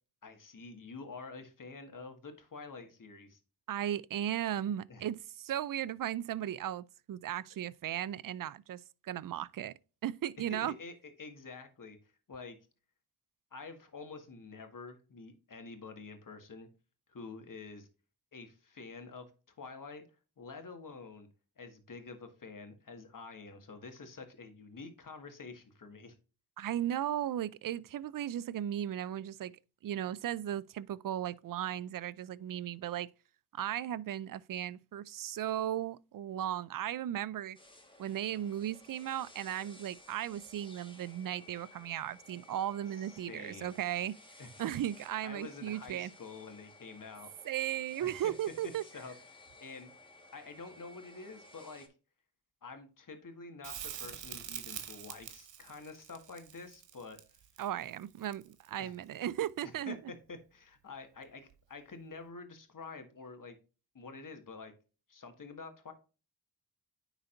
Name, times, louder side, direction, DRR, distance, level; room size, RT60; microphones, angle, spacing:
voice 1, 0.2-3.4 4.9-5.1 10.5-10.9 11.2-12.0 12.3-12.6 13.5-16.7 17.1-17.9 18.3-19.3 19.6-20.0 20.4-21.3 21.6-26.2 43.0-43.7 44.4-44.5 45.2-47.3 48.0-48.3 48.6-49.9 50.3-51.9 52.6-57.2 58.8-58.9 59.6-63.6 63.9-64.7 65.1-65.9, left 4 dB, 45° left, 1.8 m, -48 dB
voice 2, 3.7-9.7 10.0-10.7 26.6-29.5 29.8-33.1 33.5-37.6 38.0-44.1 44.6-46.1 47.4-48.8 57.6-60.0, right 11 dB, 50° right, 0.5 m, -36 dB
sound 1, 37.5-51.9, left 2 dB, 10° left, 1.6 m, -57 dB
Crackle, 53.6-58.8 61.5-61.6, right 10 dB, 85° right, 1.1 m, -45 dB
9.8 x 4.0 x 2.6 m
cardioid pair, 55°, 43 cm